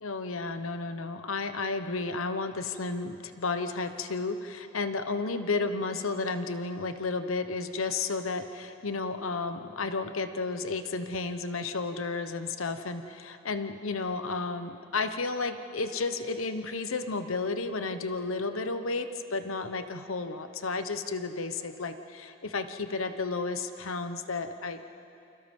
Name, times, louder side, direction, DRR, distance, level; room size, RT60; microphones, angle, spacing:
voice 1, 0.0-24.8, left 3 dB, 85° left, 9 dB, 1.1 m, -32 dB
29.0 x 27.5 x 5.5 m, 2.7 s
head